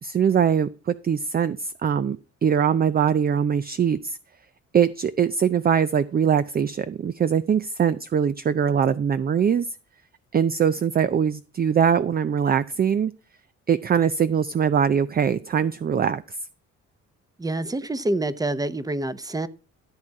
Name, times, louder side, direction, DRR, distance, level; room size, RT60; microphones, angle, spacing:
voice 1, 0.0-4.2 4.7-9.7 10.3-13.1 13.7-16.4, right 7 dB, 30° right, 0.5 m, -22 dB
voice 2, 17.4-19.5, right 2 dB, 10° right, 0.9 m, -27 dB
13.5 x 7.3 x 4.7 m
cardioid pair, 90°, 30 cm